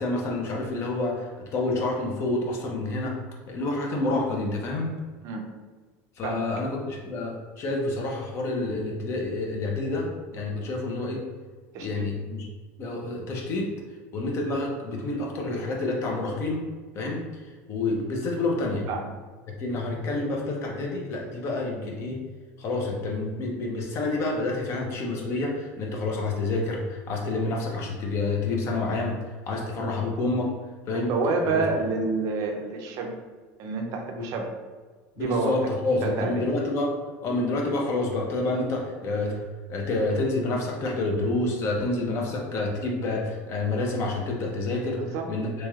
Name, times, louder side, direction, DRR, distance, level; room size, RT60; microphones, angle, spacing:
voice 1, 0.0-3.2 3.5-4.9 6.2-11.2 11.8-12.5 12.8-13.7 14.1-16.6 16.9-17.2 17.7-18.9 19.6-22.2 22.6-29.2 29.5-30.5 30.9-31.1 31.4-31.6 34.2-34.3 35.2-36.9 37.2-39.4 39.7-45.0 45.3-45.7, left 2 dB, 40° left, 0 dB, 0.6 m, -28 dB
voice 2, 11.7-12.1 18.9-19.1 30.9-33.2 33.6-34.5 35.2-35.6 36.0-36.5 45.0-45.3, right 4 dB, 50° right, 3 dB, 0.4 m, -28 dB
3.0 x 2.9 x 2.3 m, 1.4 s
cardioid pair, 155°, 7 cm